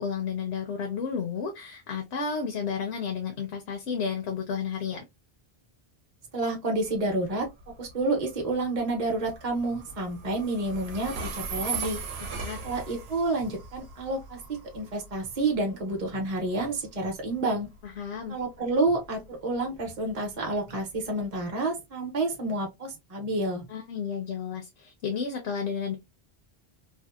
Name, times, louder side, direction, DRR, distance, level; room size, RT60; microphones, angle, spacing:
voice 1, 0.0-5.0 12.4-12.6 17.8-18.4 23.7-25.9, left 6 dB, 85° left, 0.8 m, -32 dB
voice 2, 6.3-7.5 7.8-12.0 12.6-14.4 14.7-17.7 18.3-23.6, right 2 dB, 45° right, 0.7 m, -29 dB
Train, 6.7-21.5, right 4 dB, 85° right, 0.8 m, -40 dB
2.7 x 2.0 x 2.2 m
omnidirectional pair, 1.1 m